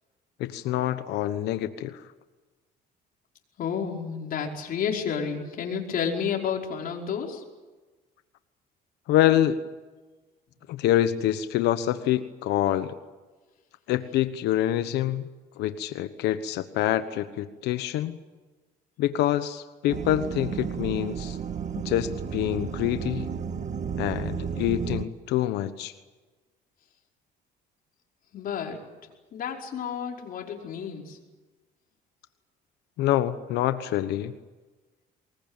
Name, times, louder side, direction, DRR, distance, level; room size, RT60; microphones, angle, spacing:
voice 1, 0.4-2.0 9.1-9.6 10.7-13.0 13.9-15.2 15.6-18.2 19.0-21.4 21.7-23.3 24.0-25.9 33.0-34.3, left 12 dB, 85° left, 11 dB, 1.2 m, -26 dB
voice 2, 3.6-7.4 28.3-28.8 29.3-31.2, left 7 dB, 60° left, 1 dB, 5.1 m, -31 dB
sound 1, 19.9-25.0, right 6 dB, 45° right, 1.8 m, -32 dB
24.5 x 21.0 x 9.1 m, 1.2 s
cardioid pair, 110°, 17 cm